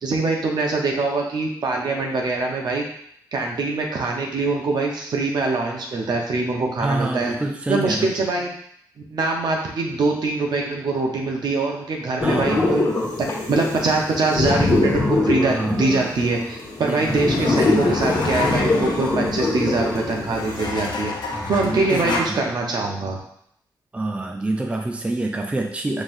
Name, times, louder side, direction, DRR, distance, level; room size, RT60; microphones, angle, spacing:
voice 1, 0.0-2.8 3.3-7.3 7.7-8.5 9.1-12.9 13.2-21.1 21.5-23.2, right 3 dB, 70° right, 0 dB, 0.9 m, -23 dB
voice 2, 6.8-8.1 12.2-12.8 15.4-16.1 16.8-18.2 21.3-22.4 23.9-26.0, right 2 dB, 15° right, 2 dB, 0.4 m, -27 dB
sound 1, 12.2-20.6, left 2 dB, 45° left, 1.5 m, -23 dB
sound 2, 16.4-22.3, left 3 dB, 75° left, 0.7 m, -30 dB
5.5 x 3.2 x 2.6 m, 0.69 s
cardioid pair, 95°, 8 cm